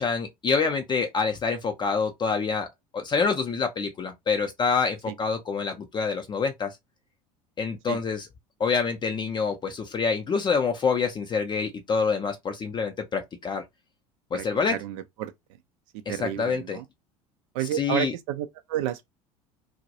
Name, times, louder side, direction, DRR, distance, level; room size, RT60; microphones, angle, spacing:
voice 1, 0.0-2.7 2.9-6.8 7.6-8.3 8.6-13.6 14.3-14.8 16.1-16.8 17.7-18.1, left 5 dB, 25° left, 0.5 m, -26 dB
voice 2, 14.3-15.3 15.9-16.8 17.5-19.0, right 12 dB, 55° right, 0.4 m, -31 dB
2.2 x 2.0 x 2.7 m
figure-of-eight pair, 70°, 19 cm